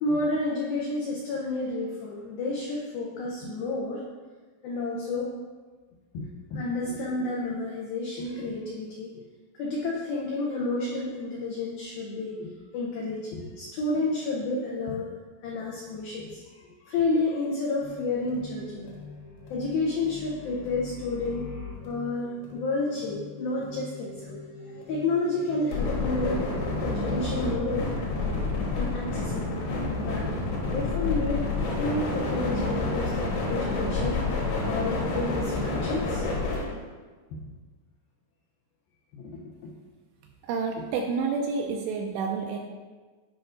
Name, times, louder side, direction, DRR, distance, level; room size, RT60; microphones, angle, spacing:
voice 1, 0.0-4.0 4.6-5.3 6.1-9.2 9.5-15.1 15.4-18.9 19.5-21.5 21.9-24.3 24.6-26.5 26.8-29.6 30.0-30.3 30.7-31.4 31.7-34.3 34.7-36.2 37.3-37.5 39.1-39.7, left 2 dB, 85° left, -3 dB, 2.1 m, -31 dB
sound 1, 17.8-36.7, left 3 dB, 70° left, 3.4 m, -31 dB
voice 2, 40.4-42.6, right 5 dB, 85° right, 2 dB, 2.5 m, -29 dB
10.5 x 5.0 x 2.5 m, 1.4 s
omnidirectional pair, 5.3 m